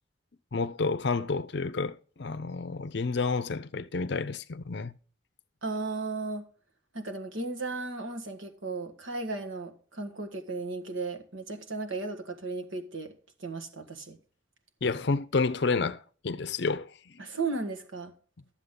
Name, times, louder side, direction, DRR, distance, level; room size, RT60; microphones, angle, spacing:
voice 1, 0.5-4.9 14.8-17.2, left 4 dB, 55° left, 0.6 m, -30 dB
voice 2, 5.6-6.4 6.9-13.1 13.4-14.2 17.2-18.1, right 3 dB, 75° right, 1.6 m, -35 dB
11.5 x 7.4 x 3.8 m
head